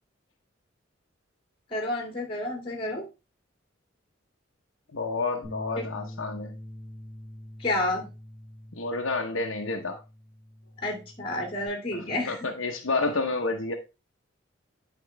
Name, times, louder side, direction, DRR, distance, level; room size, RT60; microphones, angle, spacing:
voice 1, 1.7-3.1 5.8-5.9 7.6-8.1 10.8-12.5, left 2 dB, 25° left, 1 dB, 2.1 m, -30 dB
voice 2, 4.9-6.6 8.7-10.0 11.9-13.7, left 3 dB, 80° left, 1 dB, 0.9 m, -30 dB
Bass guitar, 5.4-11.7, left 1 dB, 15° right, 4.7 m, -44 dB
9.9 x 4.6 x 3.3 m, 0.28 s
head